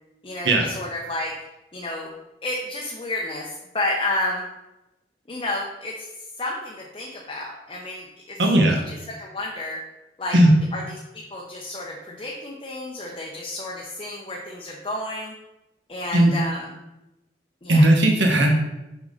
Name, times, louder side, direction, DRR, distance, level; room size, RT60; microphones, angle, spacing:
voice 1, 0.2-1.3 1.7-2.1 2.4-4.4 5.3-6.1 6.4-8.4 8.9-9.8 10.2-10.4 10.7-10.8 11.1-15.3 15.9-16.7 17.6-17.9, left 2 dB, 30° left, -2 dB, 0.7 m, -31 dB
voice 2, 8.4-8.8 10.3-10.5 16.1-16.3 17.7-18.6, right 1 dB, 80° right, 2 dB, 1.2 m, -16 dB
6.0 x 5.5 x 3.8 m, 0.96 s
head